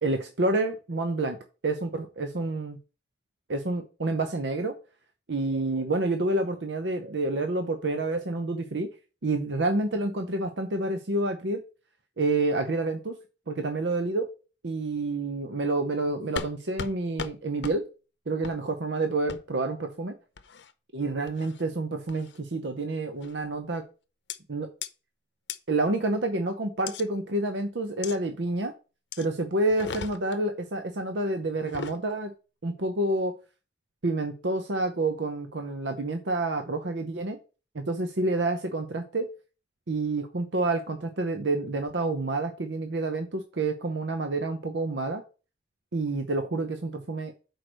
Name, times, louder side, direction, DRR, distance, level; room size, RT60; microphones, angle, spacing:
voice 1, 0.0-1.4 1.6-2.8 3.5-4.7 5.3-8.9 9.2-11.6 12.2-13.2 13.5-14.3 14.6-17.8 18.3-20.1 20.9-23.8 24.5-24.7 25.7-28.7 29.2-32.3 32.6-33.3 34.0-37.4 37.7-39.3 39.9-45.2 45.9-47.3, right 2 dB, 85° right, 6 dB, 0.8 m, -28 dB
sound 1, 16.4-16.5 16.8-16.9 17.2-17.3 17.6-17.8 18.4-18.6 19.3-19.4 20.4-20.7 21.3-21.6 22.1-22.4 23.2-23.5 24.3-24.4 24.8-24.9 25.5-25.6 26.9-27.0 28.0-28.2 29.1-29.3 29.7-30.4 31.6-32.0, left 6 dB, 80° left, 0.7 m, -37 dB
6.1 x 4.7 x 6.4 m, 0.34 s
head